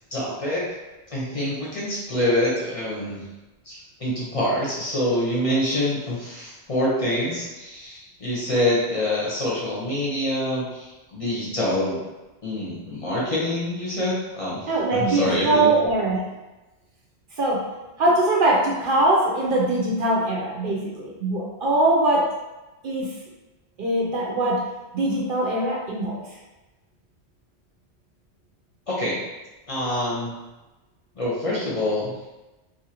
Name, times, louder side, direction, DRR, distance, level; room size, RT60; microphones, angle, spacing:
voice 1, 0.1-0.6 1.1-3.2 3.6-12.0 12.4-15.7 28.9-29.2 29.7-30.3 31.2-32.1, left 1 dB, 35° left, -7 dB, 0.8 m, -26 dB
voice 2, 14.7-16.2 17.4-17.6 18.0-22.3 22.8-23.1 23.8-24.6 24.9-26.2, right 2 dB, 60° right, -3 dB, 0.7 m, -22 dB
2.8 x 2.6 x 2.8 m, 1.1 s
omnidirectional pair, 1.1 m